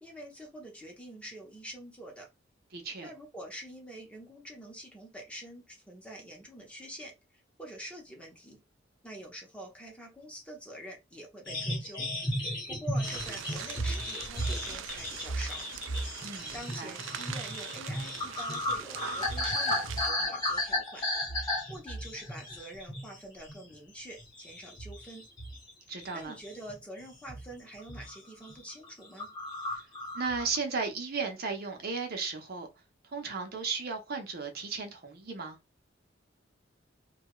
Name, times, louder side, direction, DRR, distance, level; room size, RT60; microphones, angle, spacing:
voice 1, 0.0-2.3 3.0-8.6 9.0-12.1 12.4-15.6 16.5-21.0 21.4-25.2 26.1-29.3, right 1 dB, 5° left, 0.8 m, -46 dB
voice 2, 2.7-3.1 16.2-16.5 16.8-16.9 25.9-26.3 30.1-32.7 33.1-35.6, right 4 dB, 55° right, 0.7 m, -35 dB
sound 1, 11.5-23.2 23.5-23.8 24.2-25.7 26.0-26.8 27.3-27.5 27.8-28.2 28.5-28.6 28.8-28.9 29.2-30.6, left 1 dB, 25° left, 1.1 m, -34 dB
sound 2, 13.0-20.1, right 9 dB, 80° right, 0.3 m, -42 dB
2.7 x 2.3 x 3.0 m
head